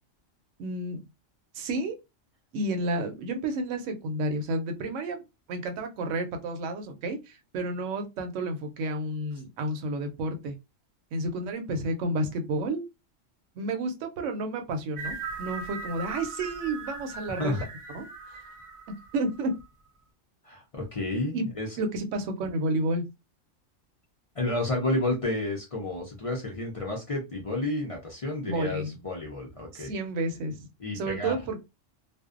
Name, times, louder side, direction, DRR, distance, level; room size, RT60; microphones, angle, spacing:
voice 1, 0.6-1.0 1.5-2.0 2.5-5.2 5.5-10.5 11.1-12.8 13.6-17.5 17.9-18.4 19.1-19.5 21.3-21.5 21.8-23.0 28.5-28.9 29.7-30.6 30.9-31.7, right 2 dB, 70° right, 5 dB, 0.9 m, -31 dB
sound 1, 15.0-19.7, right 4 dB, 55° right, 0.3 m, -39 dB
voice 2, 20.4-21.7 24.4-29.9 30.8-31.3, left 2 dB, 55° left, 0 dB, 0.4 m, -31 dB
2.5 x 2.1 x 2.4 m, 0.24 s
omnidirectional pair, 1.4 m